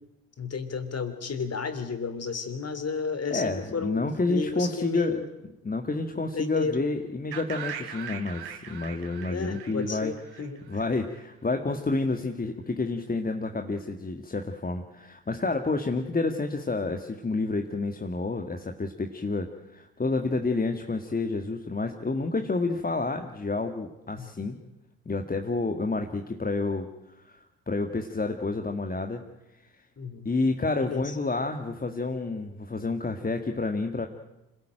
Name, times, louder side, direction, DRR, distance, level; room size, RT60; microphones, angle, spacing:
voice 1, 0.4-5.3 6.1-6.8 9.3-10.9 24.2-24.3 30.0-30.3 30.8-31.0, left 5 dB, 35° left, 10 dB, 3.3 m, -33 dB
voice 2, 3.3-10.1 10.7-24.6 25.1-26.9 27.2-29.3 30.3-34.1, left 3 dB, 20° left, 5 dB, 1.9 m, -29 dB
sound 1, 7.3-11.2, right 8 dB, 65° right, 2.8 m, -40 dB
26.0 x 17.5 x 9.0 m, 0.95 s
hypercardioid pair, 55°, 42 cm